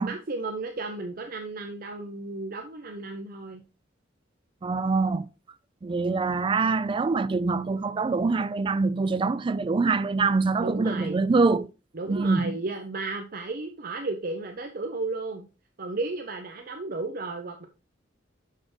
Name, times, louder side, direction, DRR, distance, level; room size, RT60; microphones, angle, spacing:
voice 1, 0.0-3.6 10.6-11.2 11.9-15.5 15.8-17.7, right 3 dB, 50° right, 0.7 m, -34 dB
voice 2, 4.6-5.3 5.8-11.7 12.1-12.6, right 3 dB, 25° right, 0.3 m, -24 dB
6.5 x 6.1 x 3.2 m
head